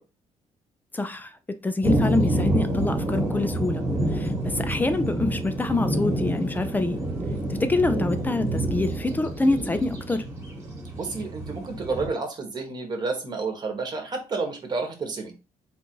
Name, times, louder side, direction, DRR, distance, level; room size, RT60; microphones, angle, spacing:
voice 1, 0.9-1.4 1.6-7.0 7.6-10.3, left 2 dB, 15° left, 0.4 m, -26 dB
sound 1, 1.8-12.1, right 1 dB, 20° right, 1.4 m, -28 dB
voice 2, 10.9-15.3, right 4 dB, 35° right, 1.2 m, -30 dB
3.8 x 2.5 x 4.5 m
cardioid pair, 140°, 12 cm